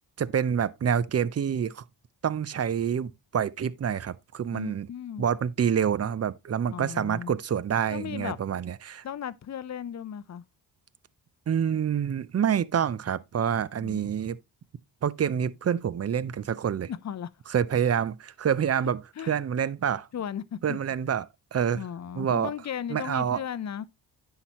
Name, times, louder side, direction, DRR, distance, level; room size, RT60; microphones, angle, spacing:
voice 1, 0.2-1.8 2.2-4.9 5.2-9.0 11.5-14.4 15.0-16.9 17.5-20.1 20.6-21.8 22.2-22.5 22.9-23.4, right 8 dB, 35° right, 0.6 m, -27 dB
voice 2, 4.5-5.3 6.7-7.3 7.9-8.4 9.0-10.4 13.8-14.1 16.9-17.3 18.8-19.4 20.1-20.8 21.7-23.8, left 9 dB, 40° left, 0.6 m, -36 dB
9.7 x 5.9 x 2.9 m
cardioid pair, 75°, 44 cm